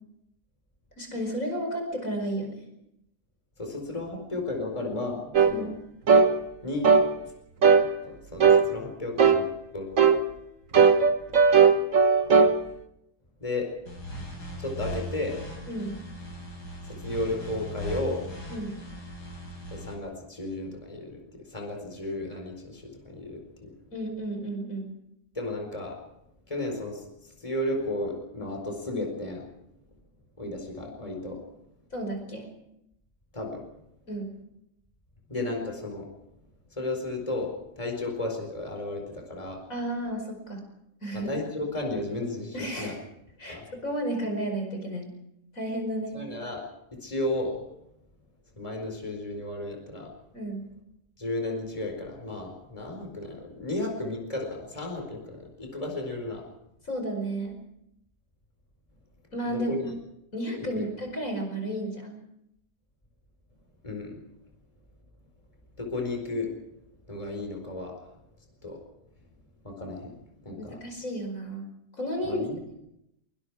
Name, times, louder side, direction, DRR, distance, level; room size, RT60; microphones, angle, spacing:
voice 1, 1.0-2.6 5.5-5.7 15.7-15.9 18.5-18.7 23.9-24.9 31.9-32.5 34.1-34.3 39.7-40.6 41.0-41.3 42.5-43.0 43.4-45.1 45.5-46.2 50.3-50.6 56.8-57.6 59.3-59.9 60.3-62.2 70.6-71.6 72.0-72.4, right 1 dB, 50° left, 4 dB, 5.4 m, -32 dB
voice 2, 3.6-5.7 6.6-7.0 8.0-9.9 13.4-13.7 14.6-15.4 16.8-18.3 19.7-23.7 25.3-26.0 26.5-29.5 30.4-31.4 33.3-33.6 35.3-36.1 36.7-39.6 41.1-42.9 43.5-43.6 46.1-46.6 47.0-47.6 48.6-50.1 51.2-56.4 59.5-59.9 60.6-60.9 63.8-64.2 65.8-66.5 67.1-67.9 68.6-68.8 69.6-70.2 70.4-70.8 72.2-72.6, left 2 dB, 20° left, 2 dB, 4.7 m, -33 dB
sound 1, 5.3-5.5 6.1-6.3 6.8-7.1 7.6-7.9 8.4-8.7 9.2-9.4 10.0-10.2 10.7-12.5, right 5 dB, 50° right, 1.8 m, -17 dB
sound 2, 13.9-19.9, equal, 70° left, 6.9 m, -38 dB
25.0 x 24.0 x 4.9 m, 0.82 s
omnidirectional pair, 1.8 m